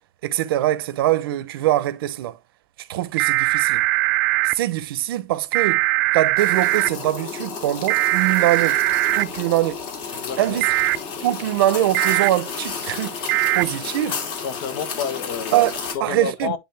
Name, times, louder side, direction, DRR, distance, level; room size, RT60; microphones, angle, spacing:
voice 1, 0.2-2.4 2.8-3.8 4.4-5.8 6.1-8.8 9.1-9.8 10.4-10.7 11.2-13.2 13.5-14.2 15.5-16.6, right 14 dB, 85° right, 0.8 m, -23 dB
sound 1, 3.2-4.5 5.5-6.9 7.9-9.2 10.6-11.0 11.9-12.3 13.3-13.6, right 19 dB, 55° right, 0.5 m, -20 dB
sound 2, 6.4-15.9, left 5 dB, 50° left, 2.4 m, -32 dB
voice 2, 10.1-10.6 14.4-16.6, left 7 dB, 65° left, 1.2 m, -30 dB
9.9 x 3.6 x 3.4 m
supercardioid pair, 160°, 12 cm